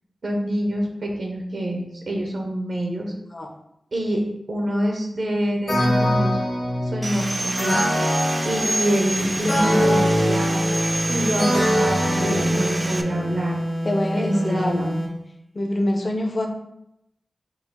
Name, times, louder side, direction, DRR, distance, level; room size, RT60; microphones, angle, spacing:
voice 1, 0.2-3.1 3.9-4.2 4.5-6.4 6.9-7.8 8.4-10.6 11.1-13.6 14.1-15.0, right 1 dB, 70° right, 1 dB, 0.6 m, -26 dB
sound 1, 5.7-13.3, equal, 75° left, 1.4 m, -24 dB
Sawing, 7.0-13.0, right 1 dB, 30° right, 0.3 m, -29 dB
sound 2, 9.4-15.2, equal, 60° left, 1.0 m, -28 dB
voice 2, 12.2-12.6 13.8-15.0 15.5-16.5, left 1 dB, 40° left, 3 dB, 0.5 m, -25 dB
3.8 x 2.3 x 4.1 m, 0.81 s
wide cardioid pair, 105°, 0 cm